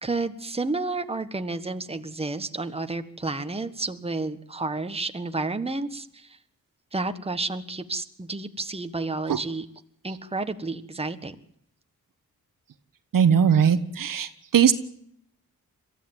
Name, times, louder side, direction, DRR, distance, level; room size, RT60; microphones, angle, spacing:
voice 1, 0.0-6.4 6.9-9.7 10.0-11.4, right 3 dB, 15° right, 9 dB, 1.5 m, -31 dB
voice 2, 13.1-14.7, right 8 dB, 70° right, 11 dB, 1.4 m, -19 dB
23.0 x 14.5 x 9.0 m, 0.71 s
cardioid pair, 90°, 34 cm